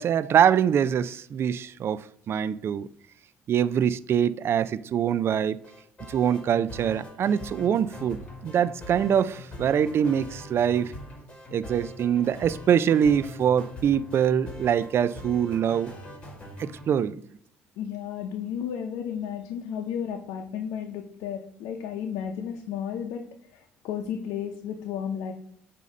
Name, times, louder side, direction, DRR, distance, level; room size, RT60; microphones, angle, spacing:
voice 1, 0.0-2.9 3.5-5.6 6.0-10.9 11.5-15.9 16.6-17.2, right 8 dB, 50° right, 0.4 m, -24 dB
sound 1, 5.6-16.9, left 1 dB, 20° left, 2.2 m, -42 dB
voice 2, 17.8-23.3 23.5-25.3, left 8 dB, 80° left, 0.7 m, -33 dB
8.2 x 2.8 x 5.3 m
supercardioid pair, 80°, 5 cm